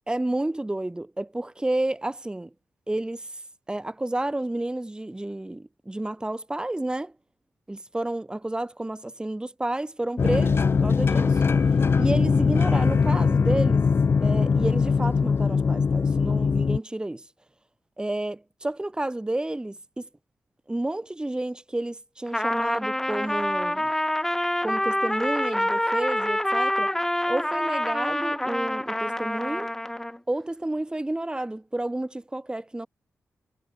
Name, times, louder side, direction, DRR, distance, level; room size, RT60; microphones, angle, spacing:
voice 1, 0.1-2.5 2.9-3.3 3.7-7.1 7.7-11.4 11.9-13.9 14.2-17.2 18.0-20.1 20.7-23.9 24.6-26.9 27.3-29.7 30.3-32.9, right 1 dB, 15° right, 1.8 m, -30 dB
sound 1, 10.2-16.8, left 5 dB, 45° left, 0.4 m, -21 dB
Trumpet, 22.3-30.2, left 1 dB, 5° left, 1.0 m, -26 dB
cardioid pair, 70°, 5 cm